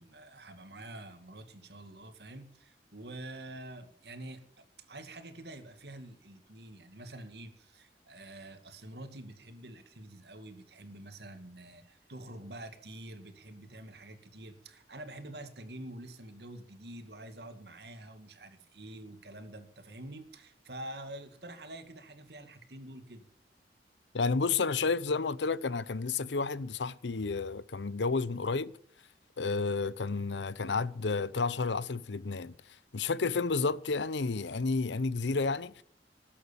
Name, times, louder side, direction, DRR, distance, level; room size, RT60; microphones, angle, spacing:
voice 1, 0.0-23.3, right 1 dB, 65° right, 2.3 m, -47 dB
voice 2, 24.1-28.7 29.4-32.5 32.9-35.8, left 4 dB, 85° left, 0.7 m, -31 dB
20.0 x 8.5 x 7.1 m
head